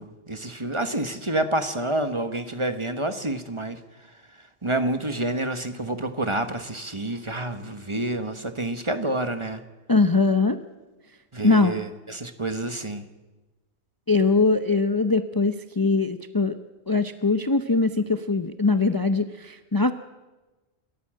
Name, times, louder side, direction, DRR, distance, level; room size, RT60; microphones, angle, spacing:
voice 1, 0.0-3.8 4.6-9.6 11.3-13.0, right 1 dB, 25° right, 9 dB, 1.2 m, -28 dB
voice 2, 9.9-10.6 11.4-11.7 14.1-16.6 16.9-19.9, left 3 dB, 25° left, 9 dB, 0.7 m, -21 dB
27.5 x 13.5 x 7.6 m, 1.2 s
omnidirectional pair, 1.1 m